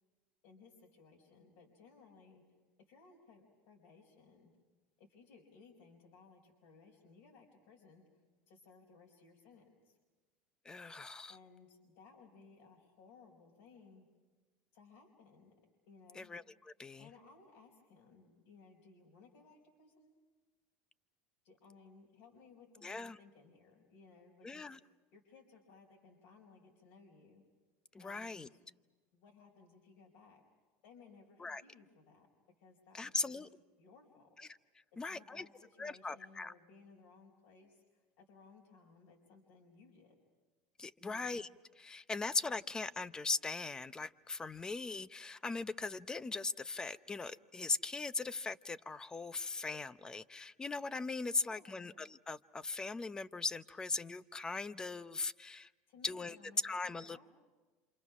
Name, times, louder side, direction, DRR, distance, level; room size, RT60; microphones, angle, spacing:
voice 1, 0.4-2.4 2.9-4.5 5.0-10.0 11.3-14.1 14.7-15.5 15.9-16.3 17.0-20.2 21.4-27.4 28.0-28.6 29.1-30.4 30.8-32.3 32.6-33.5 33.8-34.5 34.9-40.2 41.0-41.4 51.4-51.9 55.9-57.3, left 4 dB, 75° left, -2 dB, 4.5 m, -61 dB
voice 2, 10.6-11.4 16.1-17.1 22.8-23.2 24.4-24.8 27.9-28.5 31.4-31.6 32.9-33.5 34.4-34.5 35.0-35.5 35.8-36.5 40.8-41.5 41.8-55.7 56.0-56.4 56.6-57.3, left 3 dB, 15° left, 15 dB, 0.7 m, -39 dB
27.5 x 27.5 x 6.1 m, 1.3 s
supercardioid pair, 115°, 5 cm